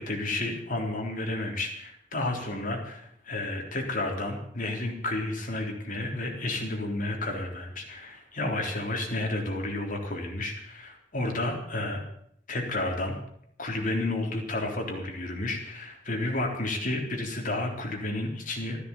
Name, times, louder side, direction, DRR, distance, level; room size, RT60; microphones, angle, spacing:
voice 1, 0.0-12.0 12.5-13.2 13.6-18.8, left 2 dB, 45° left, 2 dB, 3.6 m, -31 dB
14.0 x 12.5 x 7.2 m, 0.70 s
head